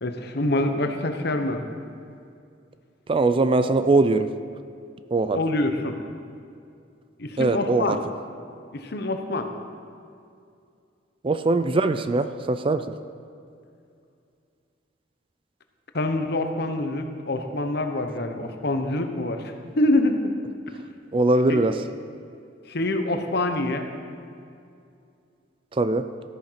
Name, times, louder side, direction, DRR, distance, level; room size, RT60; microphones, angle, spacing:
voice 1, 0.0-1.6 5.3-6.0 7.2-8.0 8.7-9.5 15.9-20.3 21.5-21.6 22.7-23.9, left 1 dB, 60° left, 6 dB, 1.0 m, -25 dB
voice 2, 3.1-4.3 5.1-5.4 7.4-8.0 11.2-12.8 21.1-21.8 25.7-26.1, right 2 dB, 30° right, 11 dB, 0.4 m, -21 dB
13.5 x 8.9 x 5.8 m, 2.4 s
head